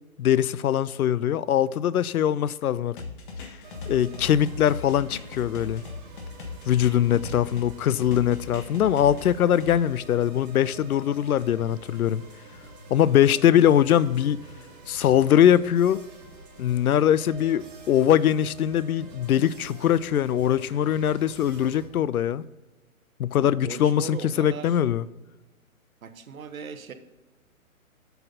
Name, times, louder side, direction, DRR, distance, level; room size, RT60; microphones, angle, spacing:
voice 1, 0.2-3.0 3.9-5.8 6.7-12.2 12.9-14.4 14.9-16.0 16.6-22.4 23.2-25.0, left 10 dB, 90° left, 0.5 m, -22 dB
sound 1, 3.0-7.7 8.0-9.7, left 4 dB, 35° left, 1.5 m, -38 dB
sound 2, 3.6-21.9, right 2 dB, 30° right, 2.4 m, -47 dB
voice 2, 23.3-24.8 26.0-26.9, right 6 dB, 75° right, 1.1 m, -39 dB
7.8 x 7.1 x 3.8 m
hypercardioid pair, 155°, 42 cm